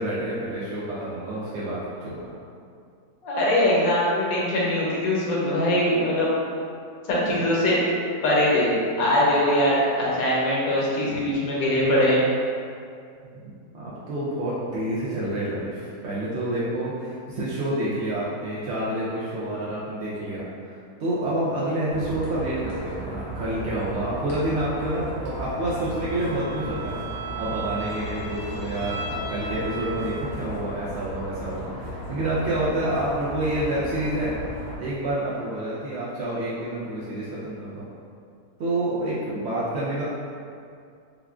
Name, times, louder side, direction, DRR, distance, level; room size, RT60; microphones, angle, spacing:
voice 1, 0.0-2.3 7.4-7.5 13.2-13.4 13.7-27.0 27.4-34.3 34.8-37.9 38.6-40.0, right 1 dB, 85° right, -8 dB, 0.5 m, -28 dB
voice 2, 3.2-6.3 7.1-7.8 8.2-12.2, left 1 dB, 70° left, -6 dB, 1.1 m, -22 dB
sound 1, 21.9-34.8, right 1 dB, 55° left, 0.5 m, -36 dB
Bowed string instrument, 25.8-30.5, right 3 dB, 50° right, 1.3 m, -36 dB
3.5 x 2.2 x 2.3 m, 2.4 s
omnidirectional pair, 1.7 m